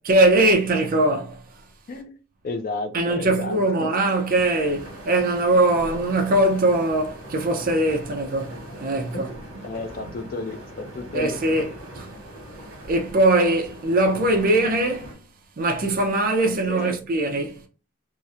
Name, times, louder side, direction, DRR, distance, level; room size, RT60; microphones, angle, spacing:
voice 1, 0.1-1.4 2.9-9.3 11.1-11.7 11.9-12.1 12.9-15.2 15.6-17.6, right 2 dB, 45° right, 0.4 m, -21 dB
voice 2, 2.4-3.6 9.1-9.3 9.6-11.4 16.7-17.0, left 2 dB, 45° left, 0.4 m, -32 dB
sound 1, 4.3-15.1, right 1 dB, 80° right, 1.0 m, -41 dB
2.8 x 2.0 x 2.4 m
head